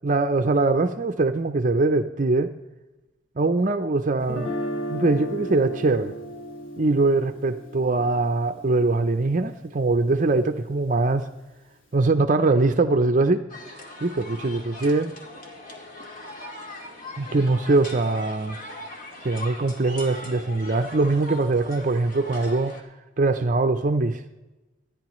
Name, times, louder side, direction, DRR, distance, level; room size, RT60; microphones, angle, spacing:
voice 1, 0.0-2.5 3.4-4.5 4.9-6.1 6.8-11.3 11.9-13.5 14.0-15.1 17.2-18.6 19.2-22.8 23.2-24.2, right 3 dB, 40° right, 0.5 m, -22 dB
Guitar, 4.2-10.2, equal, 75° left, 3.0 m, -35 dB
sound 1, 13.5-22.8, left 1 dB, 45° left, 2.0 m, -40 dB
25.0 x 10.5 x 3.1 m
head